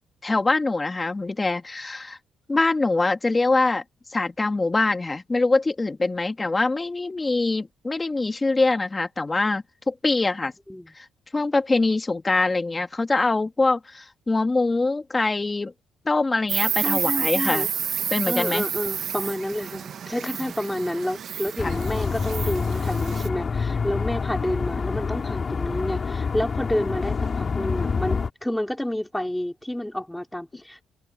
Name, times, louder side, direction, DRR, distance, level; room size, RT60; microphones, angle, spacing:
voice 1, 0.2-2.2 2.5-3.8 4.1-10.5 11.0-11.1 11.3-15.7 16.1-17.7 18.1-18.6 21.6-21.8, left 3 dB, 20° left, 1.9 m, -23 dB
Insect, 16.5-23.3, right 8 dB, 60° right, 1.2 m, -29 dB
voice 2, 16.8-17.7 18.3-30.8, left 1 dB, 5° left, 4.4 m, -29 dB
sound 1, 21.6-28.3, left 5 dB, 40° left, 5.5 m, -27 dB
cardioid pair, 90°, 0 cm